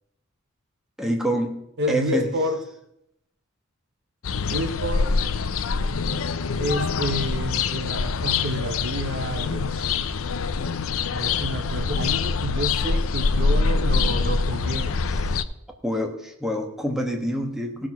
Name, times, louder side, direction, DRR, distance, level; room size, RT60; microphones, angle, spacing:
voice 1, 1.0-1.5 1.9-2.3 11.2-11.3 15.8-17.9, equal, ahead, 2 dB, 1.4 m, -26 dB
voice 2, 1.8-2.6 4.5-5.1 6.6-9.8 11.1-14.9, equal, 55° right, 9 dB, 0.9 m, -29 dB
sound 1, 4.2-15.4, left 4 dB, 90° left, 0.6 m, -25 dB
16.5 x 6.2 x 6.0 m, 0.80 s
head